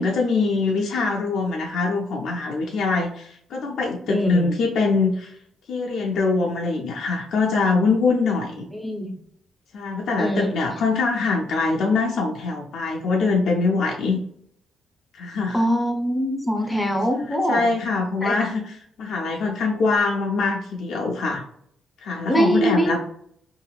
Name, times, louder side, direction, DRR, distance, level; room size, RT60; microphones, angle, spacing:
voice 1, 0.0-5.4 5.7-8.7 9.7-14.2 15.1-15.6 17.3-21.4 22.0-23.0, left 4 dB, 70° left, -1 dB, 0.5 m, -23 dB
voice 2, 4.1-4.5 8.8-9.1 10.2-10.5 15.5-17.7 18.2-18.3 22.3-23.0, equal, 10° left, 3 dB, 0.7 m, -23 dB
2.8 x 2.5 x 2.3 m, 0.70 s
cardioid pair, 90°, 0 cm